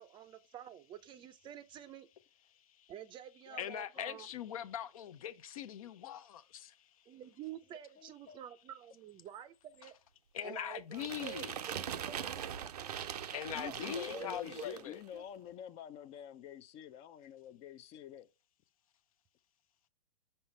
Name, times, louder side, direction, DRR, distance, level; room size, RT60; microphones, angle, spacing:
voice 1, 0.0-2.1 2.9-4.6 7.1-9.9 10.4-12.5 13.6-14.9 15.1-15.2, right 11 dB, 25° right, 0.5 m, -49 dB
voice 2, 3.6-6.8 10.3-11.5 13.3-15.0, left 10 dB, 65° left, 0.7 m, -42 dB
voice 3, 8.0-8.4 13.5-18.3, left 10 dB, 30° left, 0.5 m, -48 dB
sound 1, 10.9-14.9, right 9 dB, 80° right, 0.6 m, -42 dB
5.6 x 5.5 x 3.2 m
hypercardioid pair, 120°, 20 cm